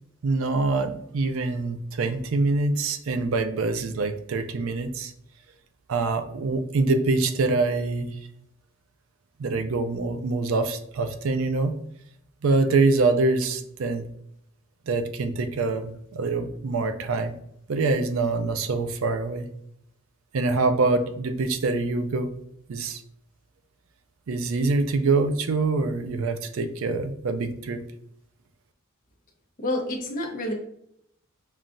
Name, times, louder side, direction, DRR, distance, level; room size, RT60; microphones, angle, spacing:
voice 1, 0.2-5.1 5.9-8.1 9.4-11.8 12.4-14.0 14.9-17.3 17.7-19.5 20.3-22.3 22.7-23.0 24.3-27.8, right 3 dB, 70° right, 9 dB, 0.4 m, -25 dB
voice 2, 29.6-30.5, left 1 dB, 40° left, 0 dB, 0.9 m, -28 dB
5.5 x 2.3 x 2.5 m, 0.73 s
head